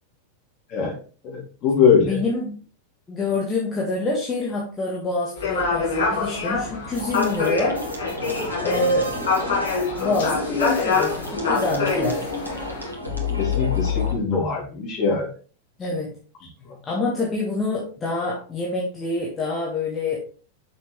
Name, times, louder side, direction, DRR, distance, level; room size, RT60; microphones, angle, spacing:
voice 1, 1.2-2.2 13.4-15.3, left 5 dB, 35° left, -2 dB, 3.7 m, -21 dB
voice 2, 2.0-2.6 3.1-7.8 8.6-9.1 10.0-12.3 15.8-16.1 16.8-20.2, left 2 dB, 20° left, -4 dB, 2.0 m, -26 dB
sound 1, 5.4-12.9, left 4 dB, 60° left, 2.2 m, -25 dB
sound 2, 6.9-14.1, left 4 dB, 90° left, 1.9 m, -30 dB
6.9 x 6.5 x 3.6 m, 0.38 s
figure-of-eight pair, 90°, 0 cm